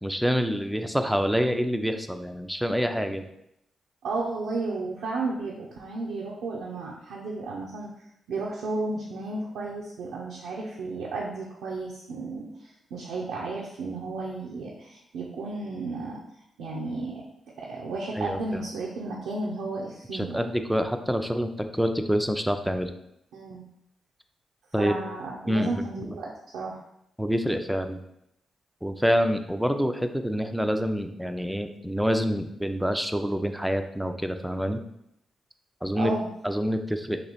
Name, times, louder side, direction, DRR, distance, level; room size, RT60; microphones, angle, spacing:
voice 1, 0.0-3.2 18.2-18.4 20.1-22.9 24.7-25.0 25.5-26.2 27.2-28.0 28.8-34.8 35.8-36.1 36.4-37.2, equal, ahead, 6 dB, 0.5 m, -27 dB
voice 2, 4.0-7.9 8.3-16.2 16.6-17.2 17.6-20.4 23.3-23.6 24.8-26.8 35.9-36.3, right 3 dB, 80° right, -4 dB, 0.5 m, -33 dB
3.0 x 3.0 x 4.1 m, 0.79 s
hypercardioid pair, 40°, 0 cm